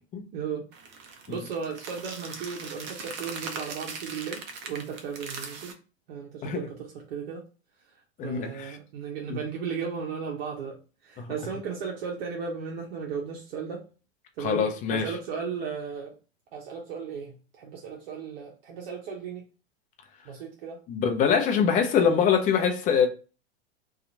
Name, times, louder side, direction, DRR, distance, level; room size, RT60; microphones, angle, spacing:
voice 1, 0.3-5.8 6.1-7.5 8.2-13.8 14.4-16.1 16.5-19.4 20.2-20.8, right 6 dB, 60° right, 0.8 m, -36 dB
sound 1, 0.7-5.7, right 5 dB, 35° right, 0.6 m, -40 dB
voice 2, 8.2-8.7 9.3-9.4 14.4-15.0 20.9-23.1, left 7 dB, 25° left, 0.6 m, -23 dB
2.8 x 2.4 x 3.8 m
hypercardioid pair, 115°, 33 cm